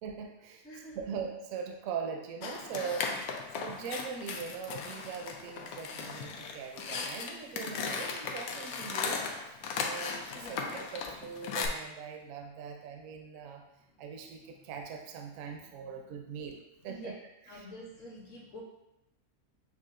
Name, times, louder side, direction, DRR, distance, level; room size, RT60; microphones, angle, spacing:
voice 1, 0.0-0.7 1.1-3.2 3.5-9.6 9.8-13.6 14.0-17.1, right 6 dB, 70° right, 3 dB, 0.9 m, -41 dB
voice 2, 0.6-1.1 10.3-10.9 13.8-14.7 15.3-16.6 16.9-17.1 17.5-18.6, left 1 dB, 60° left, -3 dB, 1.3 m, -50 dB
sound 1, 2.4-11.7, left 5 dB, 80° left, 1.0 m, -37 dB
7.1 x 2.4 x 2.5 m, 0.88 s
omnidirectional pair, 1.6 m